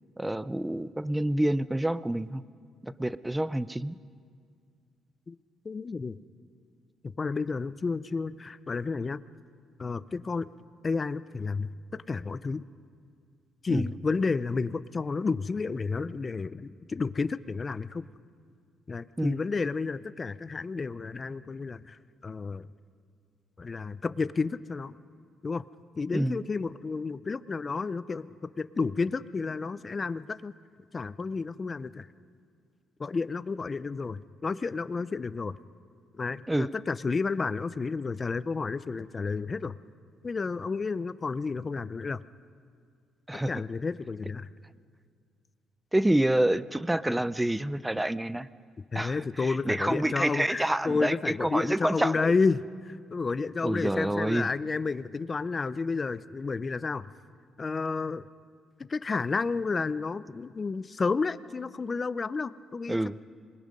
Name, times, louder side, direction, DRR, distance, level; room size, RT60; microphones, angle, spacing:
voice 1, 0.2-2.4 2.8-4.0 13.7-13.9 19.2-19.4 26.1-26.4 36.5-36.7 43.3-43.5 45.9-48.5 48.9-52.3 53.6-54.5 62.9-63.2, right 1 dB, 10° right, 16 dB, 0.6 m, -28 dB
voice 2, 5.6-6.2 7.2-9.2 9.8-10.5 10.8-12.6 13.6-18.1 18.9-22.7 23.6-24.9 25.4-25.6 26.0-30.5 30.9-32.1 33.0-35.6 36.2-39.8 40.2-42.2 43.5-44.5 48.9-57.1 57.6-58.2 58.8-63.2, left 4 dB, 35° left, 15 dB, 0.6 m, -31 dB
27.0 x 21.0 x 5.3 m, 2.1 s
cardioid pair, 90°, 0 cm